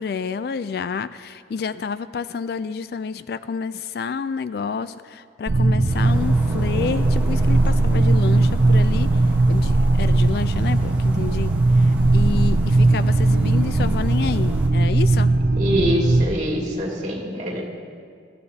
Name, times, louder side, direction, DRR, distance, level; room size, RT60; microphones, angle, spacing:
voice 1, 0.0-9.1 9.5-15.3, left 5 dB, 55° left, 14 dB, 0.3 m, -29 dB
sound 1, 5.5-16.2, right 2 dB, 80° right, 0.6 m, -18 dB
sound 2, 5.9-14.7, equal, 10° right, 1.1 m, -35 dB
voice 2, 15.6-17.6, equal, 40° right, -3 dB, 2.4 m, -24 dB
18.5 x 14.0 x 2.8 m, 2.1 s
head